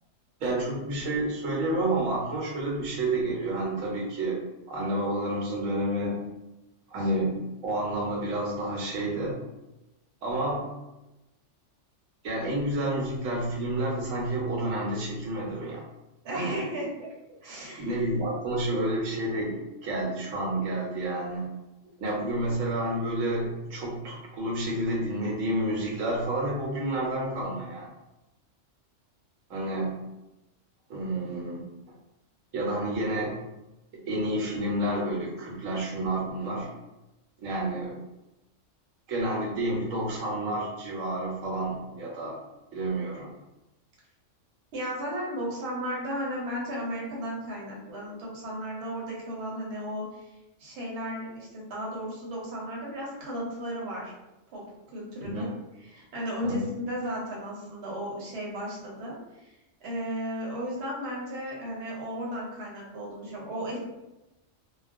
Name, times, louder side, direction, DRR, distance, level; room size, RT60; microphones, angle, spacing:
voice 1, 0.4-4.4 4.7-6.2 6.9-9.3 10.2-10.7 12.2-15.8 16.3-16.6 17.8-21.5 22.0-27.9 29.5-30.0 30.9-31.7 32.5-33.4 34.1-36.7 37.4-38.0 39.1-42.4 42.7-43.3 55.2-55.5 56.4-56.7, right 1 dB, 80° right, -2 dB, 1.1 m, -30 dB
voice 2, 16.2-17.1 17.4-17.9 44.7-50.3 50.6-54.1 54.5-54.6 54.9-55.5 55.8-63.8, equal, 60° right, -4 dB, 0.9 m, -35 dB
2.3 x 2.2 x 2.5 m, 0.98 s
omnidirectional pair, 1.3 m